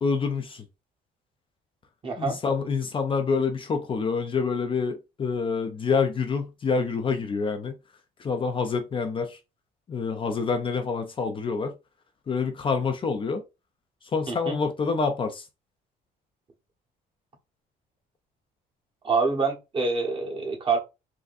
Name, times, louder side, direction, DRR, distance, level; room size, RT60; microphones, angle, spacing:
voice 1, 0.0-0.6 2.2-7.8 8.2-9.4 9.9-11.8 12.3-13.4 14.1-15.5, left 5 dB, 30° left, 0.5 m, -27 dB
voice 2, 2.0-2.4 14.3-14.5 19.0-20.8, right 4 dB, 30° right, 1.1 m, -26 dB
3.6 x 2.2 x 2.6 m
cardioid pair, 110°, 17 cm